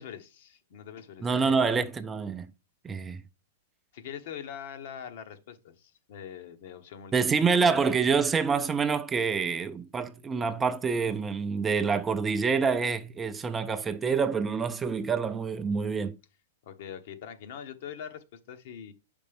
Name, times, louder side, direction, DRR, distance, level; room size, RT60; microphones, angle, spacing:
voice 1, 0.0-1.6 3.9-7.3 16.6-18.9, left 8 dB, 60° left, 1.0 m, -43 dB
voice 2, 1.2-2.5 2.8-3.2 7.1-16.1, right 5 dB, 15° right, 0.4 m, -27 dB
6.6 x 5.2 x 3.4 m
hypercardioid pair, 135°, 0 cm